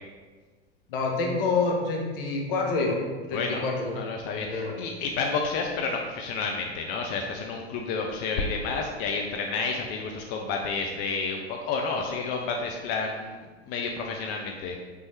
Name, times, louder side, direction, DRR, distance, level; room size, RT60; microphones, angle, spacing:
voice 1, 0.9-2.9 3.3-3.9 4.3-4.7, left 3 dB, 55° left, 0 dB, 1.0 m, -27 dB
voice 2, 3.3-14.8, left 4 dB, 30° left, 1 dB, 0.4 m, -30 dB
4.0 x 3.3 x 3.2 m, 1.4 s
figure-of-eight pair, 90°, 33 cm